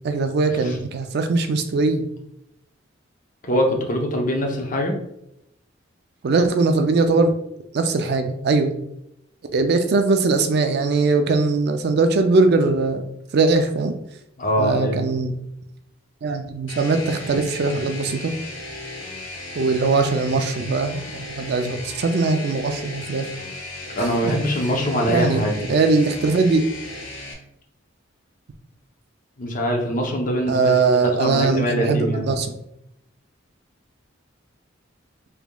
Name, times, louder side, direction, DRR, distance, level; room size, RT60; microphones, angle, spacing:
voice 1, 0.0-2.1 6.2-7.3 7.7-8.8 9.5-13.0 13.3-13.9 14.6-15.3 16.2-18.4 19.5-23.3 25.1-26.6 30.5-32.5, right 3 dB, 55° right, 7 dB, 0.4 m, -20 dB
voice 2, 3.4-5.0 14.4-15.0 24.0-25.6 29.4-32.2, equal, 45° left, 1 dB, 0.7 m, -23 dB
sound 1, 16.7-27.3, left 2 dB, 80° left, 0.8 m, -36 dB
3.5 x 3.4 x 2.2 m, 0.79 s
head